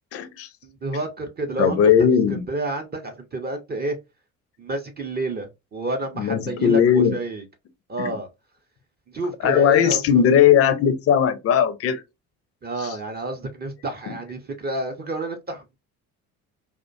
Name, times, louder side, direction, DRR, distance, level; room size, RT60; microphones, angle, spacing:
voice 1, 0.1-0.5 1.6-2.4 6.2-7.2 8.0-8.2 9.4-12.0 12.8-12.9 14.1-14.2, left 8 dB, 35° left, 0.5 m, -18 dB
voice 2, 0.6-2.1 2.5-4.0 4.6-7.4 7.9-8.3 9.1-10.2 12.6-15.8, right 2 dB, 25° right, 0.5 m, -29 dB
2.4 x 2.1 x 2.4 m
hypercardioid pair, 55°, 43 cm